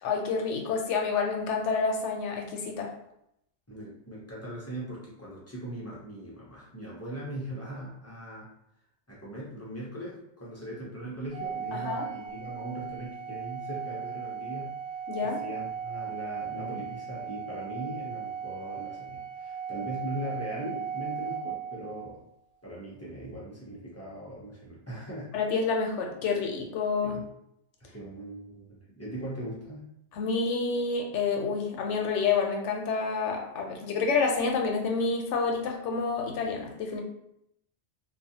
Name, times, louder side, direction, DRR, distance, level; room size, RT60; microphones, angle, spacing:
voice 1, 0.0-2.9 11.7-12.1 15.1-15.4 25.3-27.2 30.1-37.0, left 4 dB, 80° left, 2 dB, 0.9 m, -28 dB
voice 2, 3.7-8.5 9.1-14.7 15.2-22.2 22.6-25.3 27.0-27.3 27.8-29.9, right 1 dB, 25° left, -6 dB, 0.3 m, -40 dB
Organ, 11.3-22.2, right 7 dB, 75° right, 0.9 m, -37 dB
2.4 x 2.2 x 2.7 m, 0.78 s
omnidirectional pair, 1.2 m